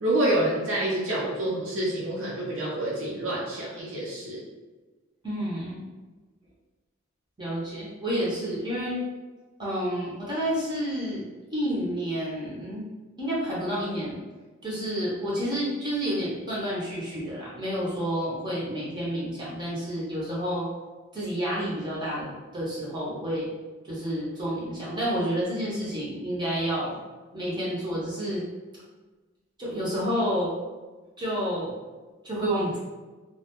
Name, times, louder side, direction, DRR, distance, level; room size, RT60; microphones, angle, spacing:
voice 1, 0.0-4.4, right 1 dB, 65° right, -6 dB, 0.6 m, -27 dB
voice 2, 5.2-5.8 7.4-9.0 9.6-11.2 11.5-12.9 13.2-14.2 14.6-20.7 21.1-23.5 23.8-27.0 27.3-28.4 29.6-30.5 31.2-31.7 32.2-32.8, equal, 20° right, -7 dB, 0.6 m, -29 dB
2.2 x 2.1 x 2.8 m, 1.2 s
head